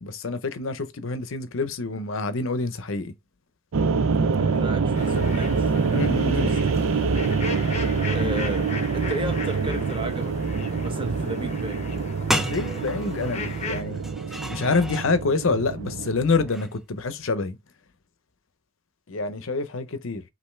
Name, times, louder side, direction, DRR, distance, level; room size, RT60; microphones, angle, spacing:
voice 1, 0.0-3.1 5.9-6.5 12.4-13.4 13.7-14.0 14.5-17.6 19.1-20.2, left 3 dB, 65° left, 0.7 m, -27 dB
sound 1, 3.7-16.5, right 5 dB, 70° right, 0.5 m, -25 dB
voice 2, 4.4-6.8 8.1-11.8, right 1 dB, 25° right, 1.1 m, -34 dB
sound 2, 4.9-13.8, left 4 dB, 30° left, 0.8 m, -38 dB
sound 3, 12.0-12.1 12.3-15.1 16.4-16.8, equal, ahead, 0.5 m, -32 dB
5.5 x 2.7 x 3.2 m
head